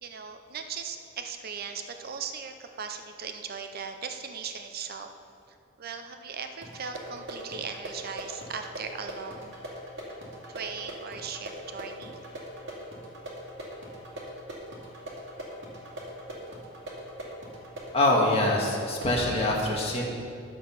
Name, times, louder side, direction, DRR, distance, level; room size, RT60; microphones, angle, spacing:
voice 1, 0.0-5.1 5.5-9.5 10.5-12.2, right 6 dB, 50° right, 6 dB, 0.6 m, -38 dB
sound 1, 6.6-19.2, right 1 dB, 65° right, 2.4 m, -41 dB
voice 2, 17.9-20.0, left 1 dB, 30° left, -3 dB, 1.9 m, -24 dB
11.0 x 7.3 x 5.8 m, 2.4 s
head